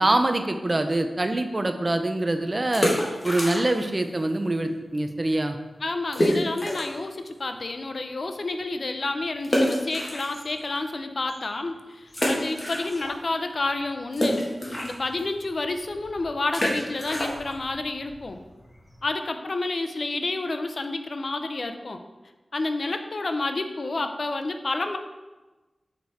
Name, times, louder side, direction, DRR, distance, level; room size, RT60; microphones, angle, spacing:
voice 1, 0.0-2.9 3.2-5.6, right 2 dB, 30° right, 7 dB, 0.5 m, -24 dB
sound 1, 2.7-4.0 4.2-4.3 4.9-5.0 5.3-5.4 6.1-7.0 7.5-7.6 9.4-10.8 11.3-11.4 12.1-13.3 13.6-19.1, left 1 dB, 35° left, 1.6 m, -28 dB
voice 2, 5.8-14.5 14.8-18.4 19.0-22.0 22.5-25.0, left 2 dB, 55° left, 7 dB, 0.5 m, -29 dB
6.5 x 4.6 x 4.1 m, 1.2 s
wide cardioid pair, 105°, 0 cm